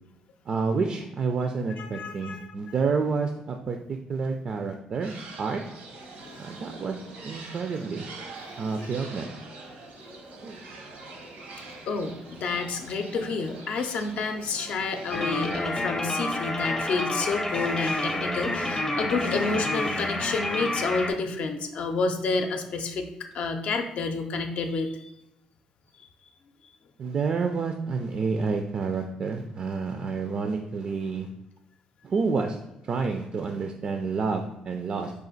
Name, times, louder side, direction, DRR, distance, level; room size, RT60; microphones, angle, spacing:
voice 1, 0.5-5.6 6.4-7.0 7.2-8.1 8.6-9.3 10.4-10.6 27.0-31.3 32.0-32.6 32.8-35.1, right 4 dB, 45° right, 5 dB, 0.3 m, -29 dB
voice 2, 1.8-2.5 6.2-6.4 8.4-8.5 11.9-23.1 23.3-25.0, left 4 dB, 60° left, 5 dB, 0.5 m, -29 dB
sound 1, 5.0-15.6, right 3 dB, 85° right, 0.8 m, -44 dB
sound 2, 15.1-21.1, left 1 dB, 15° left, 0.5 m, -29 dB
5.0 x 2.4 x 3.9 m, 0.89 s
cardioid pair, 115°, 2 cm